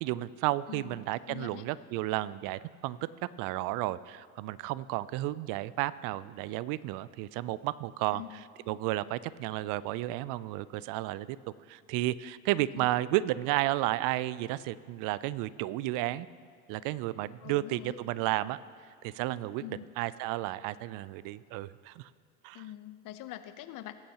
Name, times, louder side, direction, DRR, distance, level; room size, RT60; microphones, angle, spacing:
voice 1, 0.0-3.1 3.4-8.2 8.7-11.4 11.7-16.3 16.7-18.6 19.0-22.1 22.4-22.7, right 16 dB, 50° right, 18 dB, 0.5 m, -32 dB
voice 2, 0.7-1.6 8.1-8.4 12.7-12.9 17.4-18.0 19.6-19.8 22.5-23.9, left 14 dB, 50° left, 11 dB, 0.9 m, -44 dB
20.5 x 8.8 x 2.9 m, 2.1 s
hypercardioid pair, 85°, 42 cm